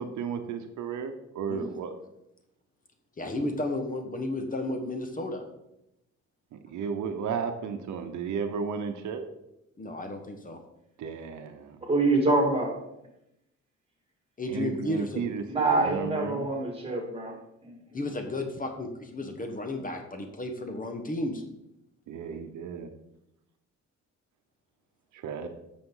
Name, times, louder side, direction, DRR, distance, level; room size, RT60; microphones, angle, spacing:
voice 1, 0.0-1.9 6.5-9.2 11.0-11.8 14.5-16.5 22.1-22.9 25.1-25.5, right 6 dB, 75° right, 7 dB, 0.9 m, -34 dB
voice 2, 3.2-5.4 9.8-10.6 14.4-15.3 17.9-21.4, left 2 dB, 25° left, 5 dB, 1.2 m, -33 dB
voice 3, 11.8-12.8 15.5-17.4 17.6-17.7, right 2 dB, 20° right, 1 dB, 2.4 m, -25 dB
8.7 x 6.3 x 3.9 m, 0.85 s
cardioid pair, 90°, 30 cm